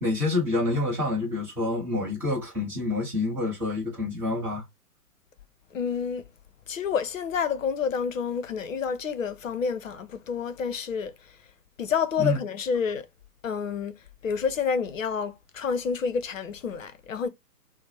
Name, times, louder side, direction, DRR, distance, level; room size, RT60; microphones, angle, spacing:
voice 1, 0.0-4.6 12.2-12.4, left 2 dB, 5° right, 0.7 m, -27 dB
voice 2, 5.7-6.3 6.7-11.4 11.8-13.1 13.4-17.3, left 6 dB, 55° left, 0.7 m, -29 dB
4.3 x 2.1 x 2.7 m
figure-of-eight pair, 125°, 47 cm